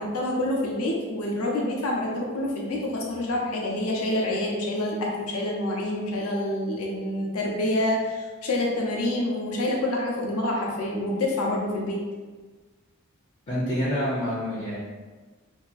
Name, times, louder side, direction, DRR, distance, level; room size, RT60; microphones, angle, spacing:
voice 1, 0.0-12.0, left 1 dB, 80° left, -1 dB, 0.6 m, -27 dB
voice 2, 13.5-14.8, equal, 35° left, -8 dB, 0.6 m, -27 dB
2.8 x 2.4 x 2.4 m, 1.4 s
head